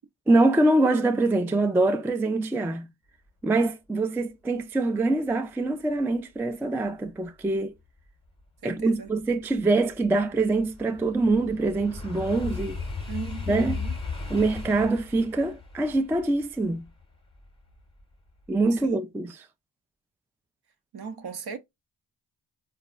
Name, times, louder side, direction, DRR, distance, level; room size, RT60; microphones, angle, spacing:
voice 1, 0.3-2.9 3.4-7.7 8.6-12.8 13.5-13.8 14.3-16.9 18.5-19.5, right 2 dB, 5° right, 0.3 m, -24 dB
sound 1, 8.4-8.5 9.0-18.0 18.4-18.8, left 4 dB, 10° left, 0.9 m, -37 dB
voice 2, 8.6-9.1 13.1-13.9 18.7-19.0 20.9-21.6, right 5 dB, 55° right, 0.8 m, -37 dB
4.0 x 2.3 x 2.3 m
cardioid pair, 45°, 47 cm